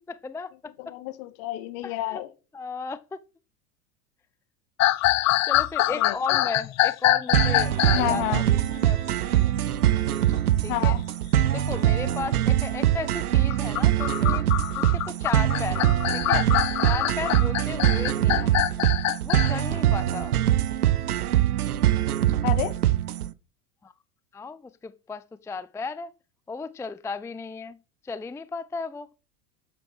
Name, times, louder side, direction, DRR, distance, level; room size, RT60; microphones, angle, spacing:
voice 1, 0.1-0.9 1.8-2.2 2.5-3.2 5.5-9.5 10.6-11.0 11.5-14.5 14.8-16.5 16.8-18.6 19.2-20.4 23.8-23.9 24.3-26.1 26.5-27.8 28.0-29.1, left 4 dB, 5° left, 0.5 m, -35 dB
voice 2, 0.8-2.3 5.9-6.5 7.9-8.4 10.6-11.0 18.4-18.6 22.4-22.8, left 16 dB, 55° left, 2.4 m, -30 dB
sound 1, 4.8-8.1 9.6-10.2 10.5-10.6 11.3-11.7 13.4-19.5, left 16 dB, 35° left, 0.9 m, -25 dB
sound 2, 7.3-23.3, right 12 dB, 80° right, 0.9 m, -23 dB
11.0 x 7.6 x 6.3 m
hypercardioid pair, 85°, 45 cm